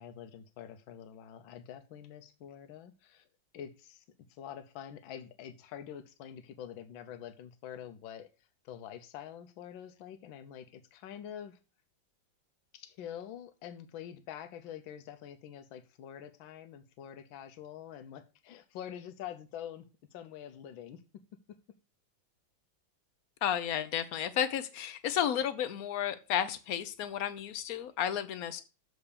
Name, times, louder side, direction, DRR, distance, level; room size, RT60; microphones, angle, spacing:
voice 1, 0.0-3.2 3.5-4.0 4.3-8.3 8.6-11.6 12.7-19.9 20.1-21.0, left 9 dB, 80° left, 8 dB, 1.5 m, -46 dB
voice 2, 23.4-28.6, left 9 dB, 60° left, 12 dB, 1.0 m, -32 dB
7.1 x 4.6 x 6.7 m, 0.32 s
omnidirectional pair, 2.1 m